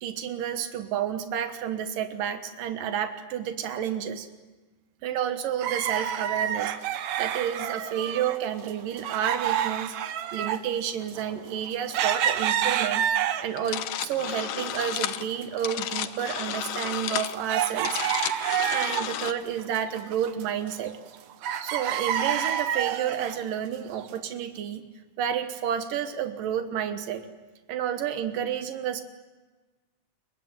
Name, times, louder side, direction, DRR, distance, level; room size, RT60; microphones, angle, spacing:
voice 1, 0.0-4.3 5.0-9.9 10.3-13.0 13.4-18.0 18.7-21.0 21.6-24.9 25.2-27.2 27.7-29.0, right 9 dB, 90° right, 8 dB, 3.0 m, -30 dB
sound 1, 5.6-8.4 8.6-13.7 14.2-15.1 15.4-15.5 16.1-19.3 19.6-21.2 21.4-23.4 24.0-24.1, right 10 dB, 65° right, 2.2 m, -28 dB
sound 2, 13.6-19.3, left 11 dB, 80° left, 2.6 m, -32 dB
29.0 x 24.0 x 8.0 m, 1.3 s
omnidirectional pair, 3.7 m